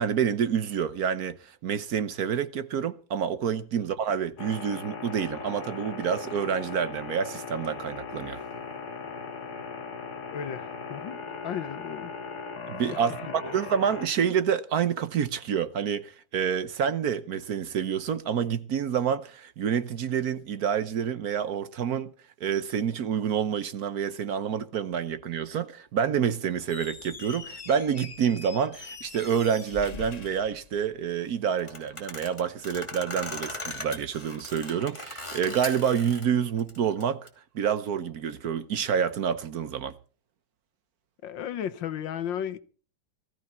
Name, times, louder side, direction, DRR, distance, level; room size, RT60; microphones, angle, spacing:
voice 1, 0.0-8.4 12.7-22.1 22.4-37.3 37.5-39.9, right 7 dB, 60° right, 1.3 m, -28 dB
sound 1, 4.4-14.1, left 5 dB, 60° left, 2.2 m, -38 dB
voice 2, 10.3-12.1 13.4-13.5 41.2-42.6, left 9 dB, 85° left, 1.8 m, -34 dB
Squeak, 26.6-31.3, left 5 dB, 40° left, 0.6 m, -43 dB
sound 2, 31.6-36.2 36.6-37.3, left 1 dB, 15° left, 2.9 m, -39 dB
19.5 x 14.0 x 4.3 m
omnidirectional pair, 2.0 m